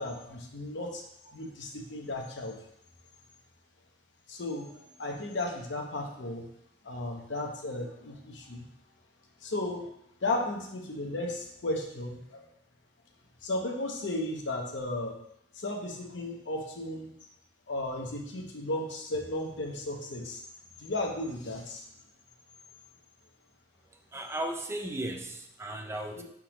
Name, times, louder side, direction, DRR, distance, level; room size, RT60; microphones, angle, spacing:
voice 1, 0.0-2.6 4.3-6.4 6.8-8.6 9.4-9.9 10.2-12.5 13.4-15.1 15.6-17.1 17.7-20.4 20.8-21.9 26.2-26.3, left 2 dB, 65° left, 1 dB, 0.8 m, -35 dB
voice 2, 24.1-26.2, right 1 dB, 15° right, 4 dB, 0.4 m, -35 dB
4.8 x 3.6 x 3.0 m, 0.75 s
head